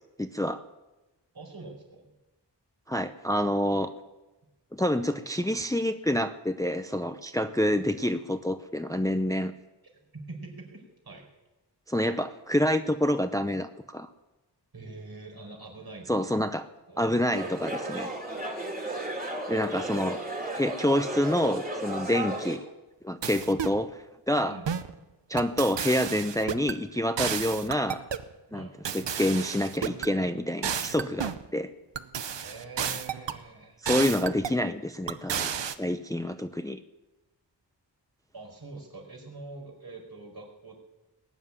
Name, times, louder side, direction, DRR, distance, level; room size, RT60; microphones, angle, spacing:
voice 1, 0.2-0.6 2.9-3.9 4.7-9.5 11.9-14.1 16.1-16.6 17.0-18.1 19.5-20.2 20.5-22.6 23.0-23.9 24.3-24.6 25.3-28.0 28.5-31.7 33.8-35.5 35.8-36.8, left 1 dB, 10° left, 9 dB, 0.6 m, -27 dB
voice 2, 1.3-2.1 10.1-11.3 14.7-16.4 16.9-17.1 17.4-18.1 24.4-24.6 28.5-28.7 32.3-33.8 38.3-40.7, right 2 dB, 60° right, 0 dB, 4.9 m, -45 dB
sound 1, 17.3-22.6, right 1 dB, 20° right, 2.8 m, -34 dB
sound 2, 23.2-23.8 24.7-24.9 25.4-26.8 27.2-28.3 28.8-30.1 30.6-31.5 32.0-33.4 33.9-34.6 35.1-35.7, right 8 dB, 85° right, 0.9 m, -32 dB
20.5 x 7.3 x 9.7 m, 1.0 s
wide cardioid pair, 110°, 43 cm